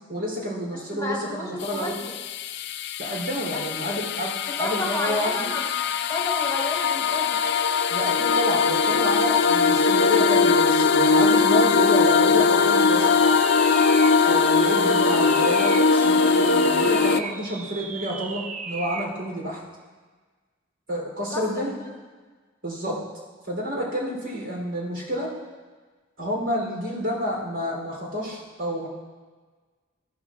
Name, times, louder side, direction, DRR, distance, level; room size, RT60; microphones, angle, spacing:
voice 1, 0.1-2.0 3.0-5.5 7.9-13.2 14.2-19.6 20.9-21.8 22.6-23.0 23.5-25.3 26.2-28.9, equal, 70° right, -3 dB, 3.6 m, -29 dB
voice 2, 0.9-2.1 3.5-4.0 4.5-5.7 6.0-7.4 21.3-21.4 21.9-22.0, left 2 dB, 15° left, -1 dB, 1.3 m, -32 dB
sound 1, 1.6-17.2, left 5 dB, 60° left, 0.4 m, -21 dB
sound 2, 12.2-19.2, right 5 dB, 40° right, 0.5 m, -36 dB
14.0 x 12.0 x 2.5 m, 1.4 s
head